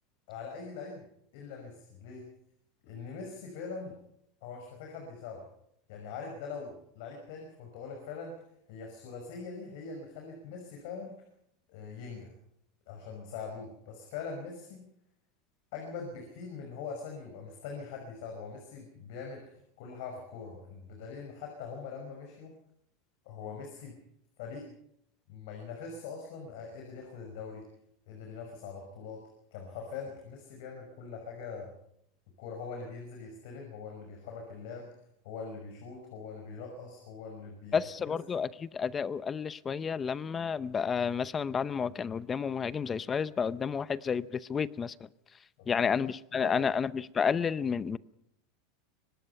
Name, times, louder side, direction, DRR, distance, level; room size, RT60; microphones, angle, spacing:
voice 1, 0.3-1.0 1.3-2.3 2.8-3.9 4.4-5.4 5.9-8.3 8.7-11.1 11.7-12.3 12.9-14.9 15.7-22.5 23.3-24.0 24.4-24.7 25.3-27.7 28.1-29.2 29.5-31.7 32.4-34.9 35.2-37.8 38.1-38.2 45.8-45.9 46.4-46.7, left 5 dB, 65° left, 5.7 m, -42 dB
voice 2, 37.7-44.9 45.7-48.0, left 6 dB, 20° left, 0.7 m, -31 dB
24.5 x 19.5 x 5.8 m
supercardioid pair, 140°, 0 cm